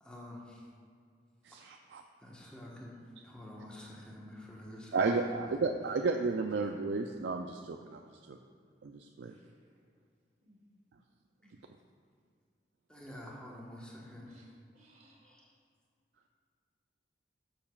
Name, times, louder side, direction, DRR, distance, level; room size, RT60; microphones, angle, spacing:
voice 1, 0.0-0.7 1.5-1.6 2.2-3.0 3.2-5.6 11.4-11.5 12.9-14.4 15.2-15.5, left 1 dB, 5° left, -4 dB, 1.2 m, -48 dB
voice 2, 1.4-2.0 4.9-8.4 8.8-9.3, right 4 dB, 80° right, 4 dB, 0.4 m, -33 dB
voice 3, 9.3-9.7 10.4-10.6 11.4-11.8 14.2-14.5 14.7-15.4, right 1 dB, 40° right, -2 dB, 1.5 m, -64 dB
12.5 x 6.9 x 2.4 m, 2.1 s
head